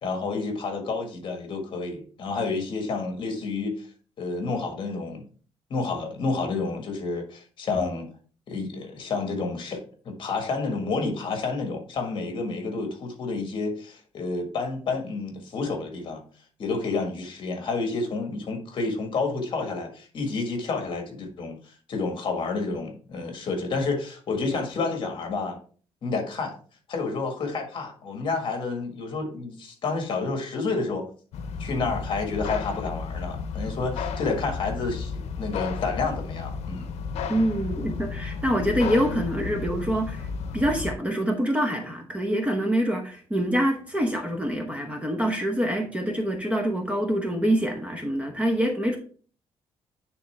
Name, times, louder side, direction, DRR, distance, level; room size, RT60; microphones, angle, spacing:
voice 1, 0.0-3.9 4.2-5.2 5.7-8.1 8.5-16.2 16.6-25.6 26.0-26.5 26.9-31.1 31.6-36.9, left 3 dB, 50° left, 1.6 m, -30 dB
sound 1, 31.3-40.9, left 5 dB, 90° left, 0.6 m, -33 dB
voice 2, 37.3-40.3 40.5-49.0, equal, 10° right, 0.9 m, -25 dB
9.9 x 3.6 x 3.3 m
cardioid pair, 150°, 11 cm